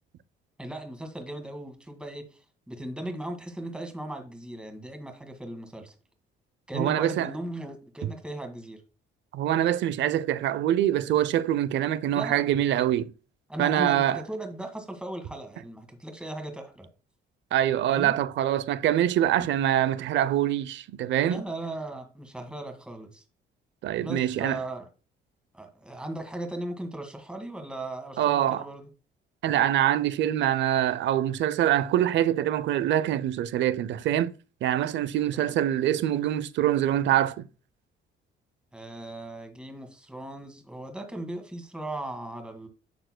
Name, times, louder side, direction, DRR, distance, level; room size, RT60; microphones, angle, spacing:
voice 1, 0.6-2.3 2.7-5.9 6.7-8.8 12.1-12.4 13.5-16.9 17.8-18.1 19.4-19.5 21.2-23.2 24.0-24.9 25.5-28.9 35.3-35.5 38.7-42.7, right 1 dB, 5° right, 1.6 m, -37 dB
voice 2, 6.7-7.3 9.3-13.1 13.6-14.2 17.5-21.4 23.8-24.6 28.2-28.6 29.4-34.3 34.6-37.5, right 11 dB, 65° right, 0.5 m, -24 dB
10.5 x 6.7 x 2.2 m
cardioid pair, 110°, 20 cm